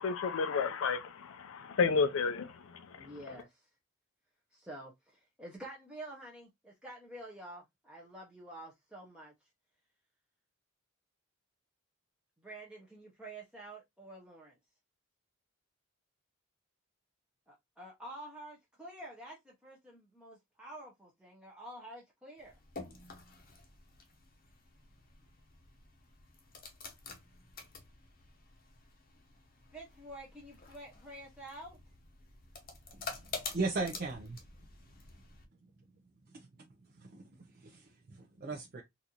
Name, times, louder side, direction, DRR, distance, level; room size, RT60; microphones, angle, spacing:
voice 1, 0.0-3.1, left 5 dB, 65° left, 0.4 m, -32 dB
voice 2, 3.0-3.7 4.5-9.3 12.4-14.6 17.5-22.6 29.7-31.8, right 1 dB, 5° right, 0.7 m, -49 dB
sound 1, 22.4-35.5, left 4 dB, 40° left, 0.8 m, -49 dB
voice 3, 33.5-34.4 36.3-36.5 37.0-37.3 37.6-37.9 38.2-38.8, right 3 dB, 45° right, 0.5 m, -36 dB
4.0 x 2.5 x 2.8 m
head